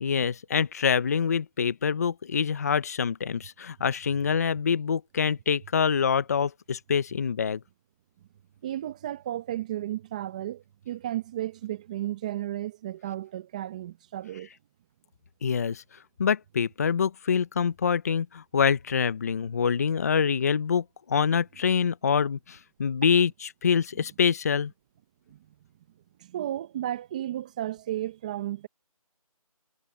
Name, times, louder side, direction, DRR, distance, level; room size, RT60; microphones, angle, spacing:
voice 1, 0.0-7.6 15.4-15.8 16.2-24.7, left 6 dB, 25° left, 0.8 m, -25 dB
voice 2, 8.6-14.5 25.3-25.4 26.2-28.7, right 13 dB, 10° right, 0.8 m, -33 dB
figure-of-eight pair, 165°, 19 cm